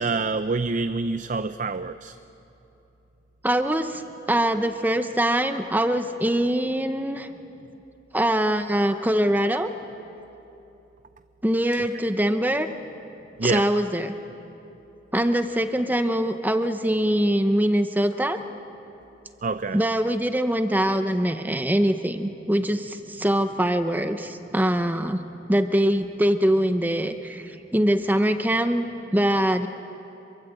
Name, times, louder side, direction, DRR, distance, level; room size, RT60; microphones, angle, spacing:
voice 1, 0.0-2.1 13.4-13.7 19.4-19.8, right 3 dB, 40° right, 11 dB, 0.5 m, -26 dB
voice 2, 3.4-4.0 4.3-7.3 8.1-9.7 11.4-12.7 13.4-14.1 15.1-18.4 19.7-25.2 25.5-29.7, right 1 dB, 10° right, 8 dB, 0.8 m, -23 dB
27.0 x 22.5 x 8.1 m, 2.9 s
head